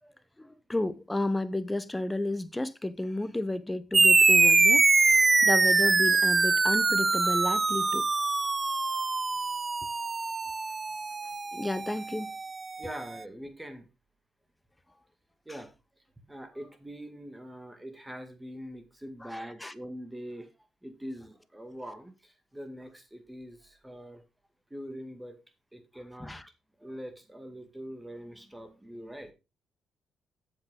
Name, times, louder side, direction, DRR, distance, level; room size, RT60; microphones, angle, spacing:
voice 1, 0.4-8.1 11.5-12.3 19.2-19.7 26.2-26.4, left 1 dB, 10° left, 0.8 m, -32 dB
sound 1, 3.9-12.8, right 3 dB, 25° right, 0.4 m, -24 dB
voice 2, 12.8-13.9 15.5-15.7 16.3-20.5 20.8-24.2 24.7-25.4 25.7-26.3 26.8-29.3, equal, 10° right, 2.2 m, -43 dB
8.3 x 7.4 x 3.8 m
cardioid pair, 90°, 0 cm